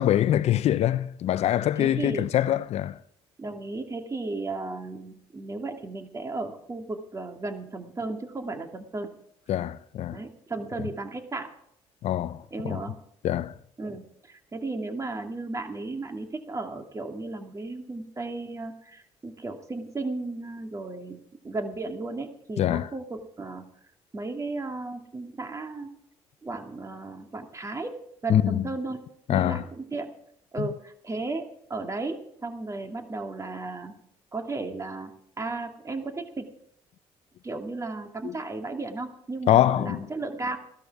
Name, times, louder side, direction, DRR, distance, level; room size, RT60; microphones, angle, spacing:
voice 1, 0.0-3.0 9.5-10.2 12.0-12.8 13.2-13.5 22.6-22.9 28.3-28.7 29.3-29.6 30.6-30.7 38.2-38.3 39.5-40.1, left 12 dB, 65° left, 0.6 m, -24 dB
voice 2, 1.8-2.3 3.4-9.1 10.1-11.5 12.5-13.0 13.8-23.6 24.1-25.9 26.4-27.9 28.2-29.0 29.3-30.1 30.5-33.9 34.3-35.1 35.4-36.5 37.4-40.6, right 3 dB, 25° right, 2.5 m, -34 dB
15.0 x 13.0 x 4.8 m
supercardioid pair, 65°, 12 cm